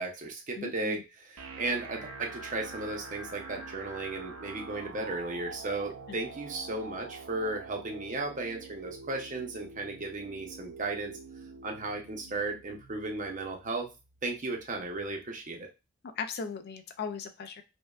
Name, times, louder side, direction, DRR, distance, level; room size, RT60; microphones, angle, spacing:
voice 1, 0.0-11.2 11.6-13.9 14.2-15.7, right 2 dB, 35° right, 2 dB, 0.7 m, -35 dB
voice 2, 0.6-1.0 6.1-6.2 16.0-17.6, left 5 dB, 50° left, 8 dB, 0.4 m, -38 dB
sound 1, 1.4-15.3, right 3 dB, 85° right, 0.6 m, -46 dB
5.2 x 2.3 x 2.3 m, 0.27 s
head